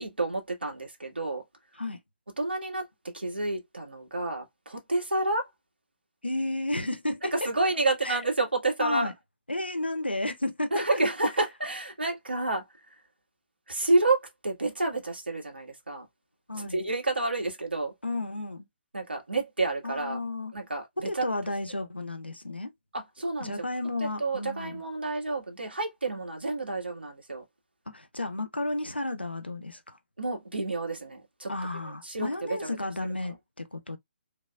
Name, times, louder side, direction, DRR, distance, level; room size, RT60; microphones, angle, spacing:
voice 1, 0.0-1.4 2.4-2.8 3.1-5.5 7.3-9.1 10.7-12.9 13.7-16.0 16.5-17.9 18.9-20.2 20.5-21.3 22.9-23.7 24.0-27.4 30.2-31.5 32.0-32.8 33.2-33.3, right 2 dB, 75° right, 1.7 m, -29 dB
voice 2, 6.2-7.5 8.0-8.2 8.8-9.1 9.5-11.0 16.5-16.8 18.0-18.7 19.8-20.5 21.0-22.7 23.4-24.8 27.9-30.0 31.5-34.0, left 2 dB, 85° left, 0.7 m, -32 dB
3.3 x 3.0 x 2.3 m
figure-of-eight pair, 135°, 6 cm